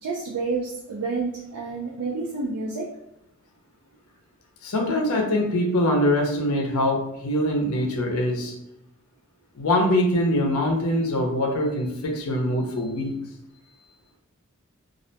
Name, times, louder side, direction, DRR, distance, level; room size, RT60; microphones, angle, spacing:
voice 1, 0.0-2.9, right 4 dB, 90° right, -3 dB, 0.4 m, -29 dB
voice 2, 4.6-8.5 9.6-13.1, left 1 dB, 80° left, 0 dB, 0.6 m, -23 dB
2.4 x 2.1 x 2.7 m, 0.82 s
head